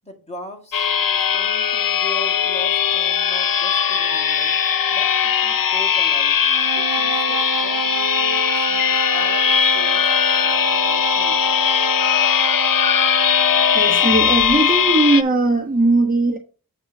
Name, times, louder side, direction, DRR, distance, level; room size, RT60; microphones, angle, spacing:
voice 1, 0.0-1.0 1.3-4.5 4.9-6.4 6.7-11.7, left 1 dB, 20° left, 2.0 m, -39 dB
sound 1, 0.7-15.2, left 8 dB, 65° left, 0.6 m, -19 dB
sound 2, 6.5-13.9, right 6 dB, 85° right, 0.7 m, -28 dB
voice 2, 13.7-16.4, right 2 dB, 25° right, 1.3 m, -18 dB
8.4 x 3.2 x 6.5 m
wide cardioid pair, 75°, 36 cm